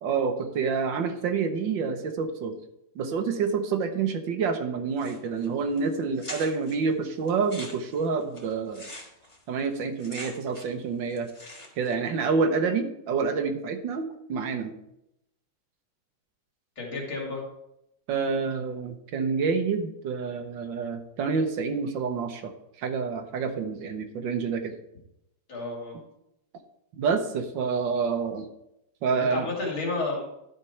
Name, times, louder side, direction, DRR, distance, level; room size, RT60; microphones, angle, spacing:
voice 1, 0.0-2.6 2.9-8.9 9.5-11.3 11.8-14.7 18.1-24.8 27.0-28.5 29.0-29.5, right 5 dB, 70° right, 7 dB, 1.6 m, -28 dB
sound 1, 5.0-5.5 5.8-5.9 6.2-6.8 7.3-10.8 11.1-11.9, left 1 dB, 15° left, 1.5 m, -43 dB
voice 2, 16.8-17.4 25.5-26.0 29.1-30.3, left 3 dB, 80° left, -2 dB, 3.4 m, -31 dB
12.0 x 5.2 x 4.5 m, 0.82 s
omnidirectional pair, 2.2 m